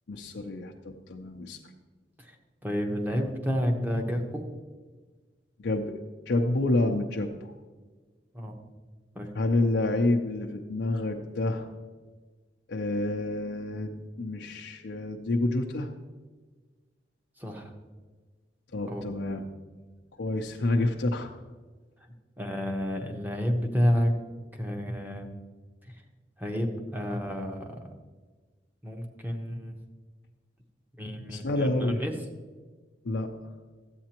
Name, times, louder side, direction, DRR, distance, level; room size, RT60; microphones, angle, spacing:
voice 1, 0.1-1.6 5.6-5.9 6.3-7.5 9.3-11.7 12.7-15.9 18.7-19.4 20.2-21.3 31.3-32.0 33.0-33.3, left 2 dB, 75° left, 1 dB, 0.6 m, -28 dB
voice 2, 2.6-4.5 8.3-8.6 9.1-9.3 17.4-17.7 18.9-19.0 22.4-24.1 24.5-25.3 26.4-27.8 28.8-29.7 31.0-32.2, equal, 10° right, 3 dB, 0.9 m, -30 dB
13.5 x 8.4 x 2.9 m, 1.4 s
head